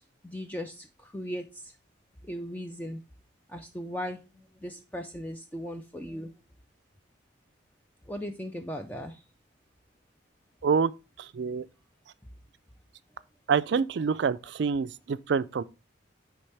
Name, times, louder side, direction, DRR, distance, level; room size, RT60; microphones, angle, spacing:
voice 1, 0.0-1.7 2.2-3.0 3.5-6.3 8.1-9.2, equal, 10° left, 0.4 m, -38 dB
voice 2, 11.3-11.7 13.5-15.6, right 6 dB, 60° right, 0.3 m, -26 dB
9.9 x 3.5 x 3.2 m
head